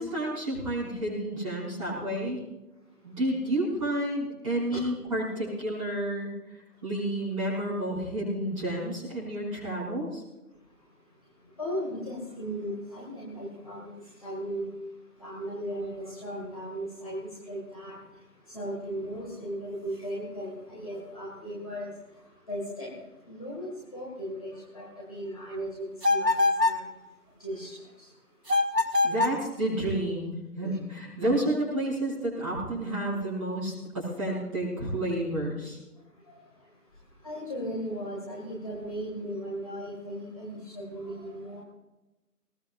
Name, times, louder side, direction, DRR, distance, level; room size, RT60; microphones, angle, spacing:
voice 1, 0.0-2.4 3.0-6.3 6.8-10.2 29.0-35.8, right 1 dB, 20° right, -8 dB, 5.7 m, -30 dB
voice 2, 11.6-13.9 14.2-14.7 15.2-17.2 17.5-18.0 18.5-21.9 22.5-22.9 23.3-26.3 26.6-26.9 27.4-28.1 30.6-30.8 36.3-36.4 37.2-41.6, equal, 20° left, -5 dB, 2.3 m, -36 dB
sound 1, 26.0-26.9 28.5-29.4, left 2 dB, 90° right, 1.5 m, -24 dB
21.0 x 18.0 x 2.6 m, 1.0 s
figure-of-eight pair, 165°, 47 cm